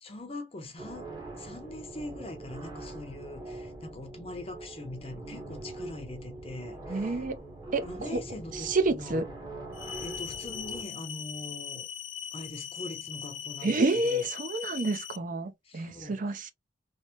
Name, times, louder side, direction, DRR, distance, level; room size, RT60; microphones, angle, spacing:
voice 1, 0.0-1.1 1.3-7.3 7.8-9.2 9.9-11.9 12.3-14.3 15.6-16.4, left 2 dB, 30° left, 0.6 m, -42 dB
sound 1, 0.8-10.8, right 2 dB, 25° right, 1.0 m, -43 dB
voice 2, 6.9-7.4 7.7-8.2 8.5-9.2 13.6-16.5, right 2 dB, 45° right, 0.5 m, -29 dB
sound 2, 9.7-15.2, left 8 dB, 80° left, 0.4 m, -39 dB
3.3 x 2.0 x 2.8 m
head